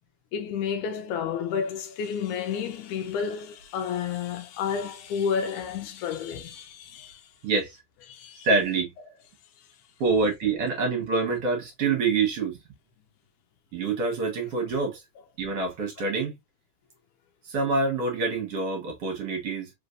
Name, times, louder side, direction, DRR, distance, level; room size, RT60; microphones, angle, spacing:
voice 1, 0.3-7.2 8.1-8.5 10.0-10.2, left 7 dB, 80° left, 2.2 m, -31 dB
voice 2, 7.4-7.8 8.4-8.9 10.0-12.6 13.7-15.0 15.4-16.3 17.4-19.7, right 4 dB, 55° right, 2.1 m, -26 dB
5.0 x 3.2 x 2.5 m
omnidirectional pair, 3.7 m